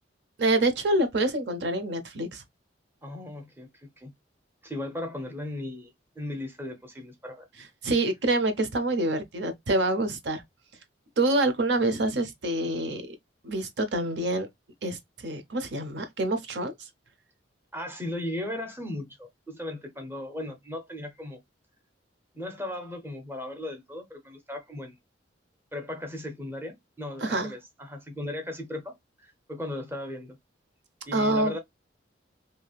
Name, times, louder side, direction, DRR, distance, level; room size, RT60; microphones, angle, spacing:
voice 1, 0.4-2.4 7.8-10.4 11.2-13.1 13.4-14.5 14.8-16.7 27.2-27.5 31.1-31.5, right 2 dB, 65° right, 0.6 m, -26 dB
voice 2, 3.0-3.7 4.0-4.1 4.6-7.5 17.7-21.4 22.3-25.0 25.7-30.4 31.1-31.6, left 1 dB, 10° right, 0.7 m, -37 dB
3.2 x 2.7 x 2.3 m
head